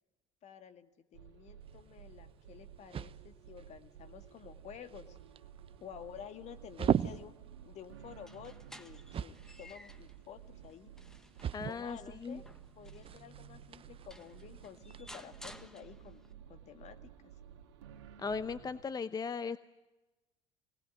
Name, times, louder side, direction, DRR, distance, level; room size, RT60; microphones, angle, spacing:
voice 1, 0.4-5.2 5.8-7.3 7.6-10.9 11.7-12.4 12.8-17.3, left 8 dB, 50° left, 9 dB, 2.1 m, -51 dB
sound 1, 1.1-18.8, right 9 dB, 80° right, 2.0 m, -54 dB
sound 2, 1.6-15.0, right 9 dB, 40° right, 0.8 m, -41 dB
sound 3, 8.1-10.2 10.7-13.3 13.8-13.9 14.1-16.3, left 1 dB, 5° left, 1.5 m, -55 dB
voice 2, 11.5-12.4 18.2-19.6, left 5 dB, 25° left, 14 dB, 0.8 m, -37 dB
25.0 x 19.0 x 9.5 m, 1.1 s
hypercardioid pair, 75°, 14 cm